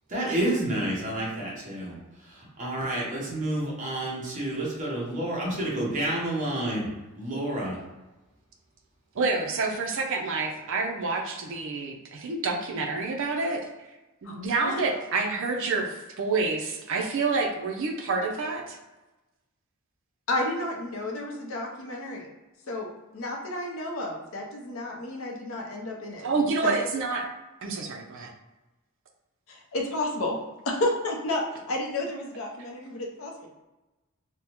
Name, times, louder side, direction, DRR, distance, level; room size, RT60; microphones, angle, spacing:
voice 1, 0.1-2.0 2.3-6.9 7.2-7.8, right 1 dB, 35° right, -5 dB, 0.9 m, -29 dB
voice 2, 9.1-13.7 14.2-18.8 26.2-27.3 27.6-28.3, right 3 dB, 60° right, 1 dB, 0.4 m, -28 dB
voice 3, 20.3-22.3 22.7-26.3 26.6-26.8 29.5-30.4 30.6-33.5, left 1 dB, 60° left, 0 dB, 0.6 m, -31 dB
3.5 x 2.1 x 2.9 m, 1.1 s
head